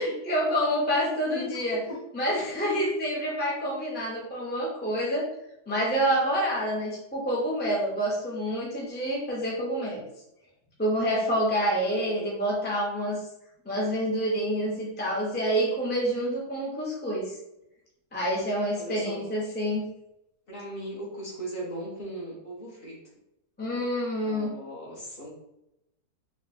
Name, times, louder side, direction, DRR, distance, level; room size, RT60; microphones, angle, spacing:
voice 1, 0.0-1.8 2.1-5.3 5.7-10.0 10.8-13.2 13.6-17.3 18.1-19.9 23.6-24.5, equal, 15° left, -4 dB, 0.4 m, -27 dB
voice 2, 1.1-2.0 11.6-12.3 18.8-19.2 20.5-23.0 24.2-25.4, right 1 dB, 35° left, -4 dB, 1.1 m, -39 dB
3.3 x 2.4 x 4.1 m, 0.85 s
omnidirectional pair, 1.8 m